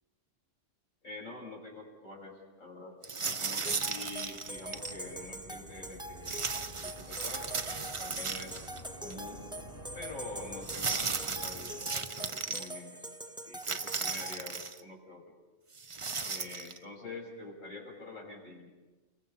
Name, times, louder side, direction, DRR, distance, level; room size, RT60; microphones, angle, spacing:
voice 1, 1.0-6.5 6.8-8.6 9.0-9.5 9.9-13.1 13.4-15.2 16.2-18.7, left 2 dB, 80° left, -1 dB, 6.8 m, -46 dB
sound 1, 3.0-5.0 6.2-8.8 9.1-9.2 10.6-12.7 13.6-14.8 15.7-16.8, right 4 dB, 30° right, 0.7 m, -36 dB
sound 2, 3.7-14.4, right 1 dB, 5° right, 0.9 m, -44 dB
sound 3, 3.9-12.4, right 1 dB, 15° left, 3.1 m, -50 dB
29.5 x 24.0 x 5.6 m, 1.2 s
omnidirectional pair, 1.3 m